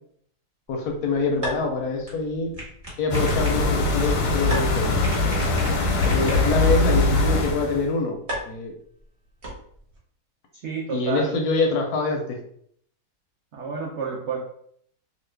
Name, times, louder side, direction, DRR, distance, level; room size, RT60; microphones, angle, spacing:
voice 1, 0.7-2.5 3.0-5.0 6.1-8.2 8.5-8.7 10.9-12.4, left 3 dB, 70° left, 2 dB, 0.9 m, -25 dB
sound 1, 0.7-10.0, equal, 45° right, 1.2 m, -39 dB
sound 2, 1.1-6.8, equal, 20° right, 1.1 m, -40 dB
sound 3, 3.1-7.9, left 2 dB, 90° left, 1.3 m, -22 dB
voice 2, 6.2-6.6 10.6-11.3 13.5-14.4, right 5 dB, 80° right, -3 dB, 0.6 m, -30 dB
2.9 x 2.4 x 3.2 m, 0.65 s
omnidirectional pair, 1.9 m